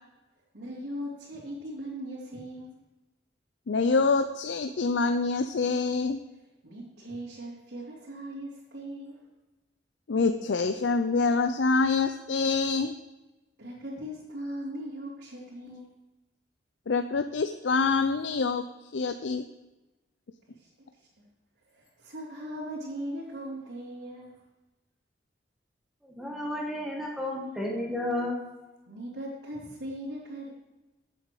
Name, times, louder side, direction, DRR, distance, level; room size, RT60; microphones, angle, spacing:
voice 1, 0.5-2.8 6.6-9.2 10.4-10.5 13.6-15.9 20.5-21.2 21.7-24.4 28.9-30.6, equal, 75° right, -8 dB, 3.2 m, -39 dB
voice 2, 3.7-6.2 10.1-12.9 16.9-18.6 18.9-19.4, left 4 dB, 85° left, 9 dB, 0.5 m, -26 dB
voice 3, 26.0-28.4, left 1 dB, ahead, -2 dB, 1.7 m, -32 dB
15.5 x 7.9 x 4.8 m, 1.1 s
head